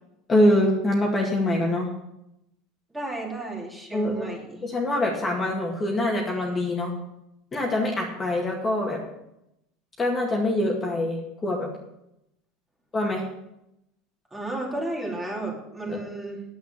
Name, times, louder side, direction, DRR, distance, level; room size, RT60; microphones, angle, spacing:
voice 1, 0.3-1.9 3.9-4.3 4.6-6.9 7.5-9.0 10.0-11.7 12.9-13.2 15.9-16.0, left 1 dB, 20° left, -1 dB, 2.1 m, -24 dB
voice 2, 2.9-4.6 14.3-16.4, right 2 dB, 10° right, -1 dB, 2.8 m, -33 dB
9.5 x 8.0 x 8.4 m, 0.85 s
supercardioid pair, 140°, 0 cm